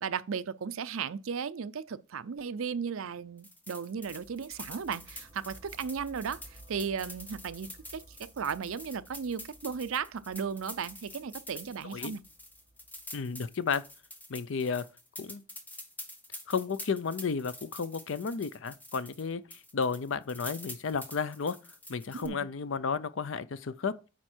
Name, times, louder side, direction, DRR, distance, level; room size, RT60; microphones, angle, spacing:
voice 1, 0.0-12.2 22.1-22.5, right 6 dB, 75° right, 0.5 m, -36 dB
sound 1, 3.4-19.3 19.5-22.3, left 1 dB, 10° left, 0.9 m, -47 dB
sound 2, 3.9-13.9, right 1 dB, 25° right, 1.2 m, -57 dB
voice 2, 11.8-12.2 13.1-13.8 14.3-14.9 15.2-15.4 16.5-21.6 21.9-24.0, left 5 dB, 65° left, 0.5 m, -33 dB
9.3 x 4.3 x 4.4 m
head